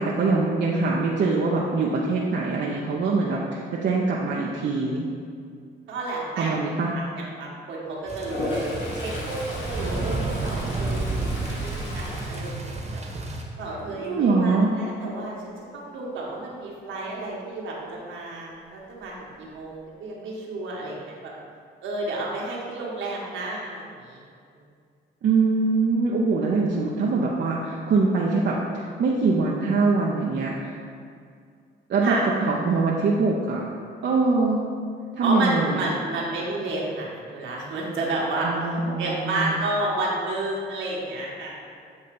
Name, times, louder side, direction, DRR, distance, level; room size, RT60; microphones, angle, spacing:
voice 1, 0.0-5.1 6.4-6.9 14.0-14.8 25.2-30.7 31.9-32.2 32.4-33.6 34.0-34.6 35.1-35.8 38.4-39.6, right 3 dB, 60° right, -3 dB, 0.7 m, -23 dB
voice 2, 5.9-6.6 6.9-13.0 13.6-21.3 21.8-24.2 32.0-32.2 35.2-41.6, right 2 dB, 80° right, -4 dB, 1.4 m, -31 dB
sound 1, 8.1-13.4, right 2 dB, 35° right, 1.2 m, -30 dB
Toilet flush, 8.2-13.4 13.8-14.2 18.6-18.7 19.0-19.7, left 2 dB, 70° left, 1.2 m, -35 dB
8.0 x 2.8 x 5.3 m, 2.2 s
supercardioid pair, 60°, 20 cm